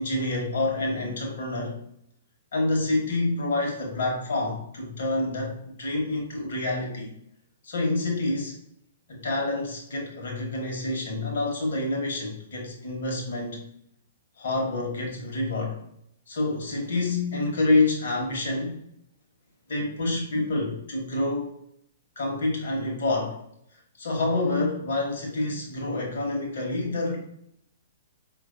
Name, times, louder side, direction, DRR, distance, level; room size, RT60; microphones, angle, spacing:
voice 1, 0.0-1.7 2.5-7.1 7.6-8.5 9.1-13.6 14.4-15.8 16.3-18.8 19.7-21.5 22.2-23.4 24.0-27.2, left 2 dB, 60° left, 0 dB, 1.1 m, -27 dB
4.7 x 2.5 x 2.6 m, 0.74 s
figure-of-eight pair, 115°, 0 cm